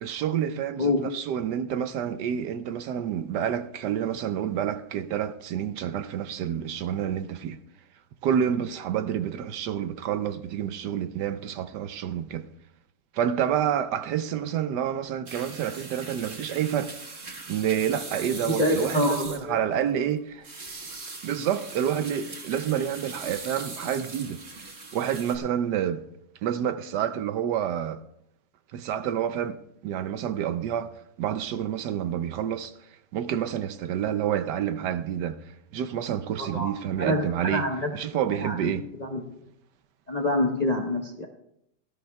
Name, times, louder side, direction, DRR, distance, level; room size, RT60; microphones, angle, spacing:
voice 1, 0.0-7.6 8.2-12.5 13.1-16.9 17.5-20.5 21.2-24.4 24.9-26.0 26.4-28.0 28.7-29.6 29.8-32.7 33.1-35.4 35.7-37.6 37.9-38.9, right 9 dB, 70° right, 1.1 m, -28 dB
sound 1, 15.3-25.4, right 3 dB, 35° right, 1.5 m, -40 dB
voice 2, 18.5-19.5 36.4-37.9 38.4-38.7 39.0-39.2 40.1-41.3, left 1 dB, 30° left, 0.7 m, -26 dB
18.0 x 13.0 x 2.3 m
omnidirectional pair, 2.1 m